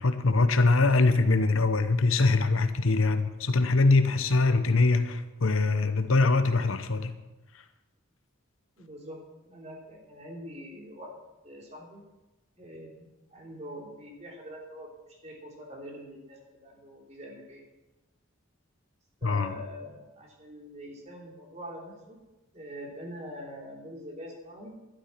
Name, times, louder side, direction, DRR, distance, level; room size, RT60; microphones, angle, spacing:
voice 1, 0.0-7.2 19.2-19.5, left 3 dB, 75° left, 10 dB, 1.0 m, -23 dB
voice 2, 8.8-11.2 11.4-12.0 12.6-17.6 19.2-22.2 22.5-24.8, equal, 30° right, 0 dB, 3.1 m, -44 dB
12.0 x 12.0 x 5.8 m, 1.0 s
head